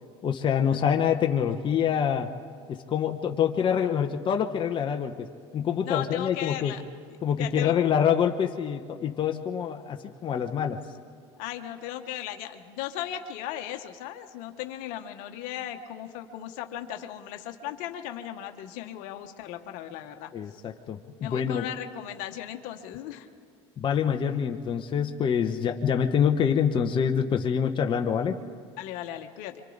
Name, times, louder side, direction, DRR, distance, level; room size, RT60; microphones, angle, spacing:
voice 1, 0.2-2.3 2.7-5.3 5.5-6.7 7.2-10.8 20.3-21.7 23.8-28.4, left 8 dB, 35° left, 4 dB, 1.0 m, -26 dB
voice 2, 5.8-6.8 7.4-7.8 11.4-20.3 21.2-23.3 28.8-29.6, left 11 dB, 65° left, 6 dB, 1.3 m, -37 dB
27.0 x 24.5 x 4.0 m, 2.1 s
supercardioid pair, 100°, 15 cm